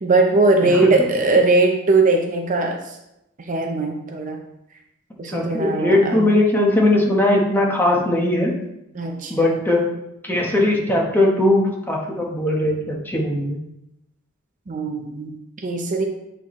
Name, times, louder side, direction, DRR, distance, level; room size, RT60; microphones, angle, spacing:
voice 1, 0.0-3.0 3.5-4.4 5.2-6.3 8.9-9.6 14.7-16.1, right 3 dB, 40° right, 2 dB, 0.6 m, -20 dB
voice 2, 0.7-1.1 5.3-8.5 9.3-9.8 10.2-13.6, left 1 dB, 10° left, -2 dB, 1.1 m, -19 dB
8.5 x 4.3 x 3.1 m, 0.86 s
head